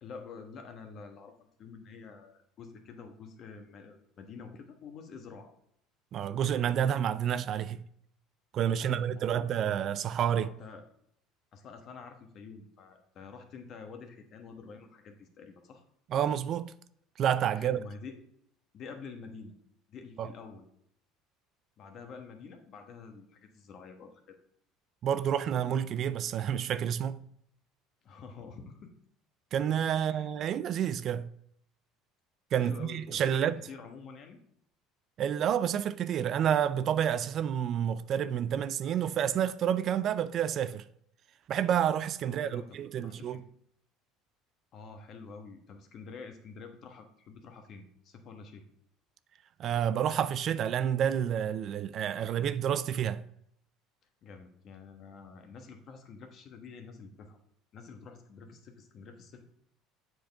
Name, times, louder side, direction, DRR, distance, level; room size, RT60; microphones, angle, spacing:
voice 1, 0.0-5.5 8.7-9.5 10.3-10.9 11.5-15.8 17.5-18.2 18.7-19.5 19.9-20.6 21.8-24.4 28.0-28.9 30.0-30.3 32.6-34.4 42.3-43.4 44.7-48.6 54.2-57.4 57.7-59.5, left 5 dB, 50° left, 1.2 m, -48 dB
voice 2, 6.1-7.8 8.5-10.5 16.1-16.7 17.2-17.8 20.2-20.3 25.0-27.2 29.5-31.3 32.5-33.6 35.2-40.8 41.5-43.4 49.6-53.2, right 9 dB, 50° right, 0.3 m, -29 dB
7.7 x 4.5 x 3.5 m
supercardioid pair, 100°, 0 cm